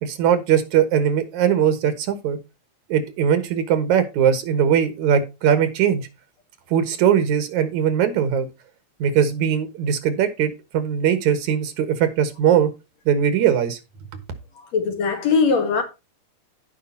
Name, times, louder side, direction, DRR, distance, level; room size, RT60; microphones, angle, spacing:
voice 1, 0.0-2.4 2.9-6.1 6.7-8.5 9.0-12.7 13.1-13.8, right 8 dB, 85° right, 2.8 m, -20 dB
voice 2, 14.7-15.8, left 5 dB, 70° left, 2.9 m, -20 dB
15.5 x 5.3 x 2.8 m
omnidirectional pair, 3.3 m